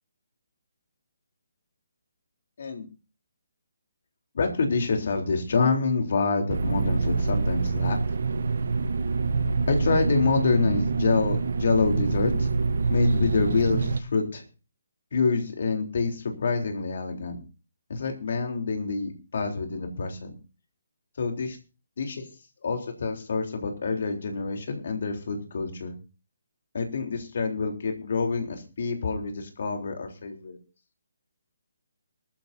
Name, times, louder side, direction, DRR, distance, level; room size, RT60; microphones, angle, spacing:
voice 1, 4.3-8.2 9.7-12.5 12.9-14.4 15.1-17.4 17.9-20.3 21.2-21.6 22.0-22.2 22.6-25.9 26.7-30.6, left 4 dB, 55° left, 3 dB, 3.7 m, -27 dB
sound 1, 6.5-14.0, right 4 dB, 60° right, 1.2 m, -26 dB
20.0 x 14.5 x 2.7 m, 0.33 s
figure-of-eight pair, 140°, 0 cm